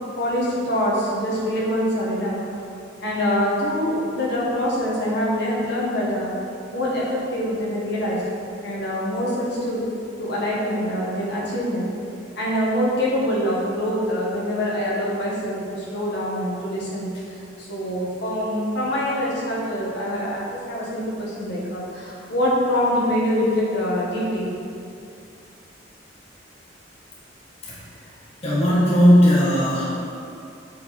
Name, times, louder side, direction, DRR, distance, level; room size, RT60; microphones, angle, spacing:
voice 1, 0.2-2.4 3.0-6.3 6.7-8.2 8.6-9.8 10.2-11.9 12.3-24.5, equal, 65° left, -6 dB, 1.6 m, -24 dB
voice 2, 28.4-29.9, equal, 35° left, -8 dB, 1.3 m, -16 dB
6.9 x 5.1 x 4.2 m, 2.5 s
head